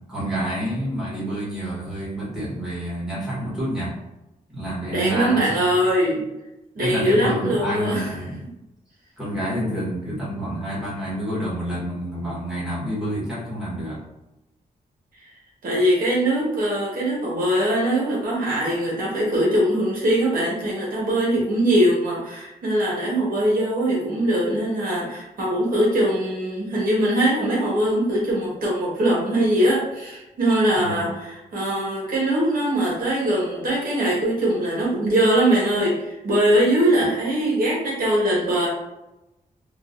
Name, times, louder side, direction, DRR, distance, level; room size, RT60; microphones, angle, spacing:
voice 1, 0.0-3.9 4.5-5.6 6.8-8.4 9.2-14.0 30.7-31.0, equal, 5° right, -8 dB, 1.2 m, -28 dB
voice 2, 4.9-6.3 6.7-8.1 15.6-38.7, right 1 dB, 75° right, -5 dB, 1.3 m, -21 dB
3.8 x 2.4 x 2.5 m, 0.95 s
wide cardioid pair, 165°, 15 cm